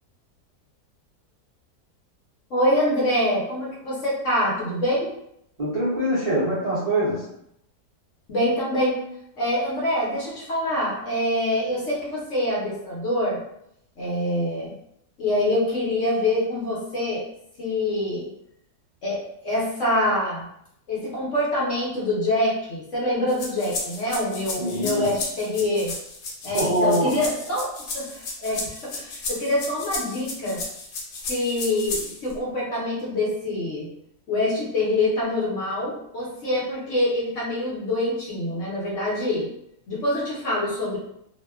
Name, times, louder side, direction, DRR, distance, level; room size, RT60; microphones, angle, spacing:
voice 1, 2.5-5.1 8.3-9.0 9.4-13.4 14.0-14.7 15.2-17.2 17.6-18.3 19.0-19.2 19.4-20.5 20.9-25.9 26.4-30.6 31.3-33.9 34.3-39.5 39.9-41.0, left 1 dB, 55° left, -5 dB, 0.9 m, -25 dB
voice 2, 5.6-7.2 24.6-25.1 26.4-27.1, right 1 dB, 70° right, -10 dB, 0.3 m, -24 dB
sound 1, 23.3-32.3, left 3 dB, 90° left, 1.3 m, -33 dB
2.7 x 2.2 x 2.2 m, 0.75 s
omnidirectional pair, 1.8 m